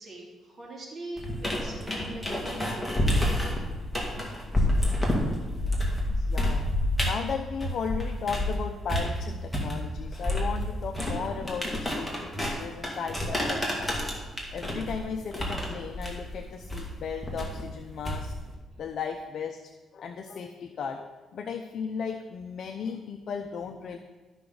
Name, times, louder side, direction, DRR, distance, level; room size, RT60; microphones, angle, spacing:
voice 1, 0.0-3.5, right 1 dB, 50° right, -3 dB, 2.6 m, -42 dB
sound 1, 1.2-8.6 8.9-18.5, left 1 dB, 5° left, 2.2 m, -29 dB
voice 2, 4.8-5.2 6.1-6.7 7.0-13.9 14.5-18.3 18.8-19.6 19.9-24.0, left 6 dB, 60° left, 5 dB, 0.6 m, -35 dB
12.5 x 5.9 x 3.9 m, 1.2 s
cardioid pair, 90°, 0 cm